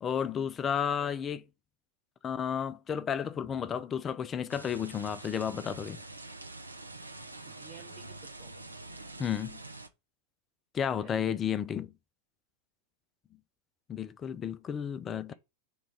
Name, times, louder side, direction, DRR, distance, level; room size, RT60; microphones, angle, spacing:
voice 1, 0.0-1.4 2.2-6.0 9.2-9.6 10.7-11.9 13.9-15.3, left 8 dB, 25° left, 0.3 m, -32 dB
voice 2, 0.8-1.1 7.4-8.6 11.0-11.4, right 7 dB, 35° right, 1.1 m, -54 dB
sound 1, 4.5-9.9, right 2 dB, 85° right, 0.4 m, -46 dB
5.0 x 2.3 x 4.4 m
figure-of-eight pair, 90°, 0 cm